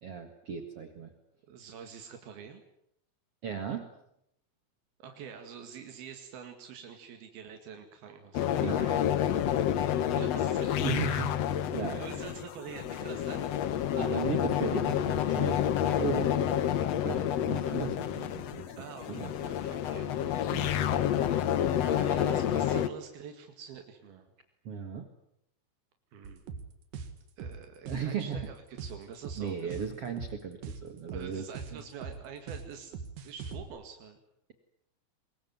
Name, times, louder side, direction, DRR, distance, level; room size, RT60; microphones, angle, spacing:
voice 1, 0.0-1.1 3.4-3.9 8.6-9.0 10.8-11.3 11.7-12.0 14.0-16.7 17.0-18.8 19.1-19.3 20.5-20.9 24.6-25.1 27.8-28.4 29.4-31.4 31.7-31.8, right 6 dB, 45° right, 6 dB, 2.5 m, -36 dB
voice 2, 1.5-2.6 5.0-8.9 10.2-11.3 12.0-13.6 18.8-20.7 21.8-24.3 26.1-26.4 27.4-29.9 31.1-33.0 33.2-34.2, right 7 dB, 90° right, 5 dB, 4.0 m, -46 dB
sound 1, 8.3-22.9, left 10 dB, 65° left, 1.7 m, -29 dB
sound 2, 26.2-33.6, right 5 dB, 70° right, 3.6 m, -41 dB
24.0 x 22.0 x 9.5 m, 0.77 s
omnidirectional pair, 4.2 m